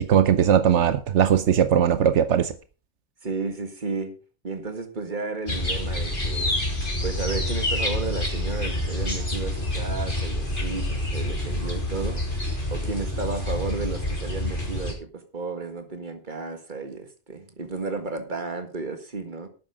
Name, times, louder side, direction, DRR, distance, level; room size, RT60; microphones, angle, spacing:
voice 1, 0.0-2.5, right 9 dB, 85° right, 1.1 m, -19 dB
voice 2, 3.2-4.2 4.4-6.6 7.0-19.5, right 4 dB, 45° right, 1.9 m, -33 dB
sound 1, 5.5-14.9, left 1 dB, 45° left, 3.6 m, -27 dB
12.0 x 9.2 x 5.0 m
omnidirectional pair, 1.2 m